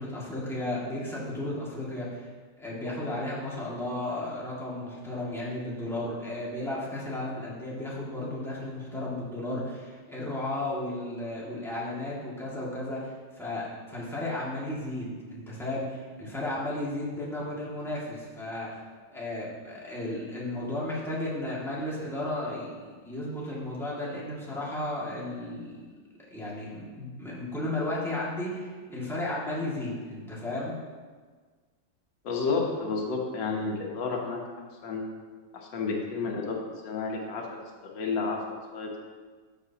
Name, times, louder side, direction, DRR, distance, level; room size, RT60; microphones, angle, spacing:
voice 1, 0.0-2.3 2.6-18.8 19.1-25.9 26.3-30.7, left 1 dB, ahead, -7 dB, 2.0 m, -34 dB
voice 2, 32.2-34.4 34.8-35.0 35.5-37.5 37.8-38.4 38.7-39.0, left 4 dB, 90° left, 0 dB, 1.8 m, -31 dB
13.0 x 6.8 x 2.9 m, 1.5 s
omnidirectional pair, 1.9 m